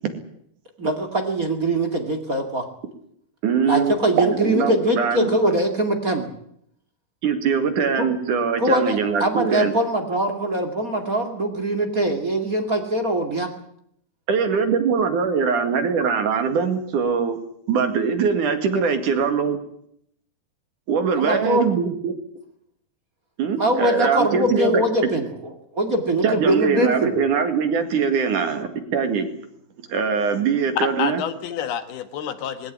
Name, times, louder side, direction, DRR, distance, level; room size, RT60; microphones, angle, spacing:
voice 1, 0.8-2.6 3.7-6.3 8.0-8.1 8.6-13.5 21.2-21.7 23.6-25.3 25.7-27.1, right 1 dB, 30° right, 4 dB, 2.1 m, -22 dB
voice 2, 3.4-5.3 7.2-9.7 14.3-17.4 17.7-19.6 20.9-22.1 23.4-24.8 26.2-29.3 29.9-31.2, right 6 dB, 60° right, 7 dB, 3.4 m, -22 dB
voice 3, 30.8-32.7, left 9 dB, 85° left, 10 dB, 3.5 m, -28 dB
20.5 x 16.5 x 9.8 m, 0.70 s
omnidirectional pair, 4.3 m